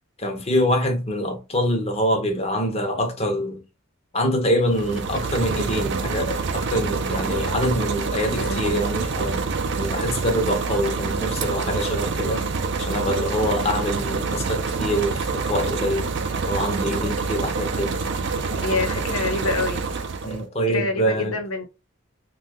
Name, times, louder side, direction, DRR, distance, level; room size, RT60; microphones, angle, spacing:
voice 1, 0.2-3.6 4.1-9.5 9.8-12.5 12.8-16.1 16.4-17.9 18.5-19.1 20.2-21.4, equal, 30° left, 0.7 m, -25 dB
sound 1, 4.6-20.4, right 4 dB, 55° right, 0.4 m, -26 dB
voice 2, 8.3-8.8 18.6-19.9 20.7-21.7, left 3 dB, 90° left, 0.9 m, -27 dB
2.7 x 2.3 x 3.6 m
head